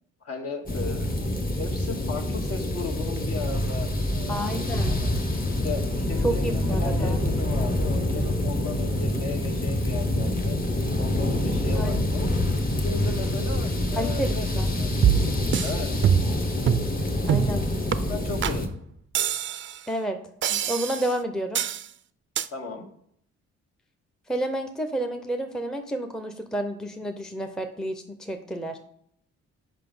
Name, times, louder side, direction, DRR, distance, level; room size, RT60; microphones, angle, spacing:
voice 1, 0.2-1.1 1.6-4.6 4.9-5.1 5.5-10.6 11.0-12.4 12.8-14.9 15.6-15.9 17.4-17.5 18.0-18.7 22.5-22.8, left 3 dB, 50° left, 3 dB, 1.5 m, -36 dB
sound 1, 0.7-18.7, left 1 dB, 30° left, 1.2 m, -26 dB
voice 2, 4.3-5.0 6.2-7.2 11.7-12.1 14.0-14.7 17.3-17.7 19.9-20.2 20.5-21.6 24.3-28.8, right 1 dB, ahead, 5 dB, 0.6 m, -30 dB
sound 2, 15.0-15.7 16.0-16.4 16.7-16.9 17.3-17.5 17.9-18.0 18.4-18.6 19.1-19.8 20.4-21.1 21.5-21.9 22.4-22.5, right 9 dB, 40° right, 0.4 m, -24 dB
5.8 x 5.3 x 5.3 m, 0.69 s
cardioid pair, 90°, 30 cm